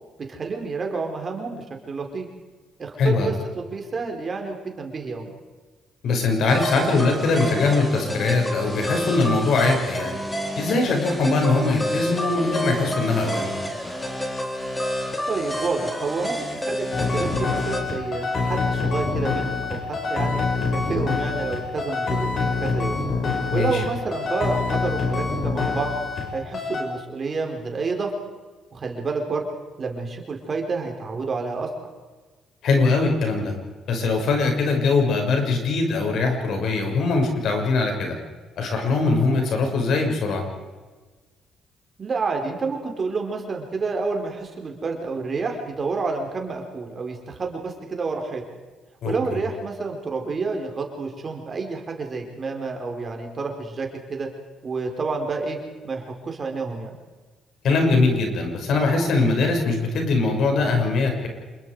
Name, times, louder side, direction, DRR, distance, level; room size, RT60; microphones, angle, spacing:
voice 1, 0.2-2.3 2.8-5.3 11.5-11.7 15.3-16.9 17.1-19.8 20.1-20.4 20.7-23.0 23.5-25.9 26.3-28.1 28.7-29.5 29.8-31.7 42.0-48.4 49.0-54.3 54.6-55.6 55.8-56.9, right 4 dB, 35° right, 3 dB, 4.5 m, -29 dB
voice 2, 3.0-3.3 6.0-10.1 10.6-13.6 23.5-23.8 32.6-33.5 33.9-38.1 38.6-40.4 49.0-49.4 57.6-61.3, left 3 dB, 65° left, 2 dB, 6.2 m, -21 dB
sound 1, 6.5-17.8, equal, 15° left, 4.0 m, -29 dB
sound 2, 16.9-26.3 26.5-26.8, left 4 dB, 45° left, 6.1 m, -25 dB
27.0 x 22.0 x 5.0 m, 1.3 s
cardioid pair, 100°, 0 cm